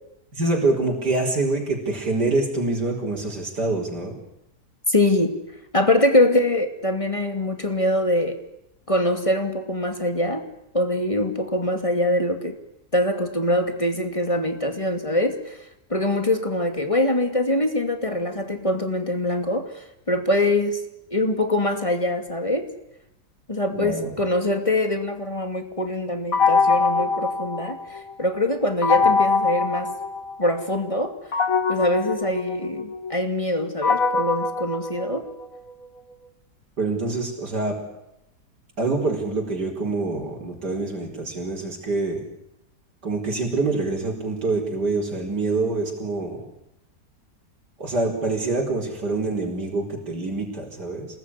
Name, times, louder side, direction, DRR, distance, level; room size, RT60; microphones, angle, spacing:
voice 1, 0.3-4.2 23.7-24.1 29.0-29.1 36.8-37.8 38.8-42.2 43.0-46.4 47.8-51.1, right 3 dB, 90° right, -1 dB, 5.1 m, -25 dB
voice 2, 4.9-5.3 5.7-8.4 8.9-10.4 10.7-12.6 12.9-15.6 15.9-20.8 21.1-22.7 23.5-29.9 30.4-31.2 31.7-35.3, left 1 dB, 20° left, 6 dB, 2.6 m, -23 dB
sound 1, 26.3-28.1 28.8-30.6 31.3-35.6, left 4 dB, 55° left, 2.6 m, -23 dB
27.5 x 20.0 x 9.9 m, 0.85 s
omnidirectional pair, 1.7 m